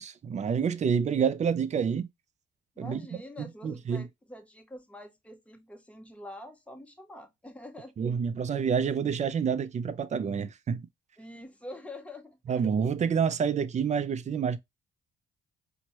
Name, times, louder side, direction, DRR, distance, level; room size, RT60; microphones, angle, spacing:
voice 1, 0.0-2.1 2.8-4.0 8.0-10.9 12.5-14.6, right 7 dB, 35° right, 0.4 m, -28 dB
voice 2, 2.8-7.9 8.3-8.5 11.2-12.6, left 1 dB, 5° left, 0.8 m, -46 dB
4.4 x 2.1 x 2.9 m
cardioid pair, 90°, 20 cm